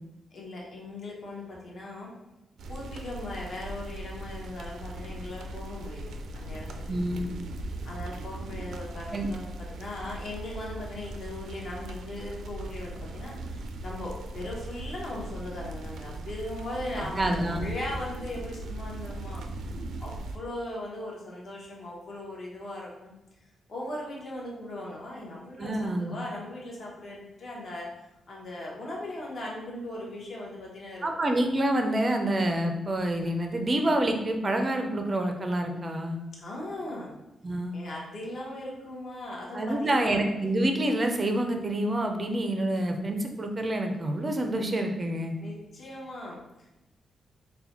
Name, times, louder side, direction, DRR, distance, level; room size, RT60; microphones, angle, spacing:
voice 1, 0.3-2.1 2.7-6.9 7.8-19.4 20.0-23.1 23.7-27.9 28.3-31.0 36.3-37.1 37.7-40.2 45.4-46.7, left 1 dB, 45° left, -3 dB, 0.8 m, -39 dB
sound 1, 2.6-20.4, right 2 dB, 85° right, 0.4 m, -39 dB
voice 2, 6.9-7.3 9.1-9.3 17.0-17.6 25.6-26.1 31.0-36.2 37.4-37.8 39.5-45.3, right 1 dB, 25° right, 4 dB, 0.4 m, -27 dB
4.2 x 2.2 x 4.1 m, 0.98 s
wide cardioid pair, 170°, 0 cm